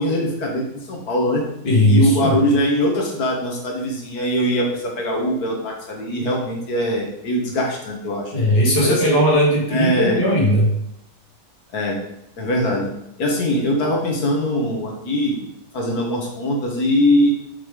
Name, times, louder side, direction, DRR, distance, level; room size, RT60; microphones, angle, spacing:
voice 1, 0.0-1.4 1.9-8.3 8.8-9.0 9.7-10.2 11.7-12.0 12.4-12.9 13.2-15.4 15.7-17.3, left 1 dB, 60° left, 0 dB, 1.7 m, -21 dB
voice 2, 1.6-2.4 8.3-10.7, equal, 75° left, -6 dB, 2.4 m, -17 dB
6.0 x 3.5 x 4.7 m, 0.80 s
omnidirectional pair, 1.9 m